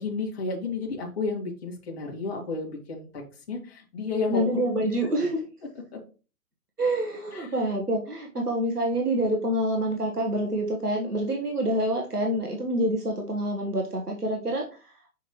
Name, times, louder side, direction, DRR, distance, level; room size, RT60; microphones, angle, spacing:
voice 1, 0.0-3.2 3.5-4.4 5.0-5.1 7.3-7.5, left 4 dB, 40° left, -1 dB, 2.1 m, -31 dB
voice 2, 4.3-5.4 6.8-14.6, right 1 dB, 90° right, 0 dB, 1.5 m, -27 dB
6.4 x 5.1 x 3.0 m, 0.34 s
figure-of-eight pair, 125°, 45 cm